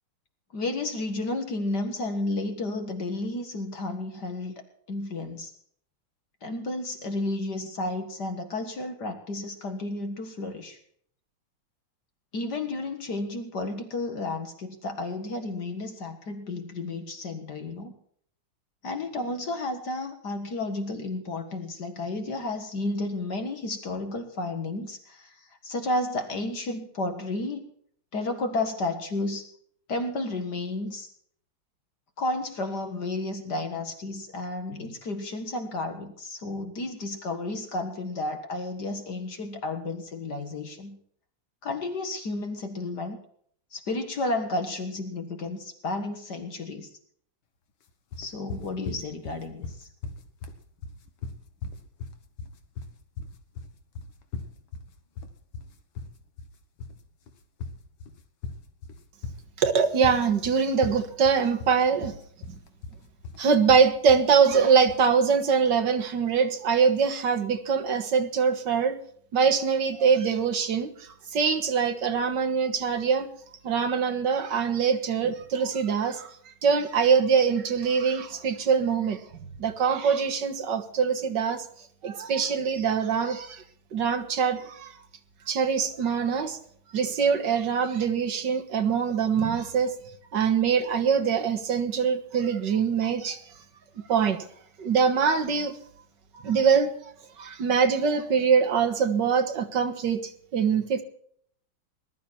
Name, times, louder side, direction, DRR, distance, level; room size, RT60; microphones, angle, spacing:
voice 1, 0.5-4.6 4.9-5.5 6.4-10.8 12.3-18.0 18.8-27.6 28.1-29.5 29.9-31.1 32.2-41.0 41.6-43.2 43.7-46.9 48.2-49.9, left 2 dB, 55° left, 6 dB, 2.2 m, -32 dB
sound 1, 48.1-65.1, left 4 dB, 75° left, 2.2 m, -39 dB
voice 2, 59.6-62.2 62.5-62.6 63.4-69.0 69.3-73.3 73.6-76.4 76.6-79.2 79.6-81.7 82.0-83.6 83.9-85.0 85.5-86.6 86.9-89.9 90.3-93.4 94.1-94.4 94.8-95.8 96.3-96.9 97.4-101.0, right 6 dB, 60° right, 6 dB, 2.1 m, -23 dB
20.0 x 12.0 x 4.4 m, 0.63 s
omnidirectional pair, 2.2 m